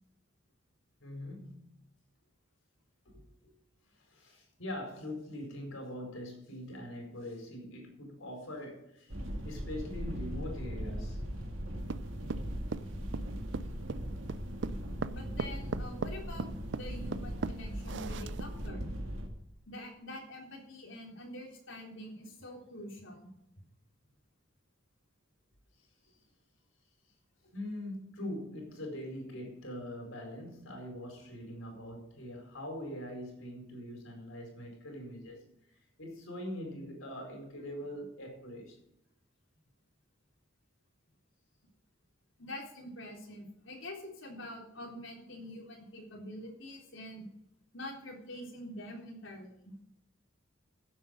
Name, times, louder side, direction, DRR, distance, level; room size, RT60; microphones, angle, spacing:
voice 1, 1.0-1.7 3.1-3.5 4.0-9.1 9.4-11.2 27.5-35.4 36.0-38.8, left 1 dB, 90° left, 4.8 m, -42 dB
sound 1, 9.1-19.3, equal, 85° right, 2.4 m, -39 dB
sound 2, 11.9-18.7, right 4 dB, 60° right, 0.5 m, -38 dB
voice 2, 15.1-18.9 19.7-23.3 23.6-23.7 42.4-47.3 47.7-49.7, left 1 dB, 70° left, 3.7 m, -46 dB
15.0 x 7.9 x 5.3 m
head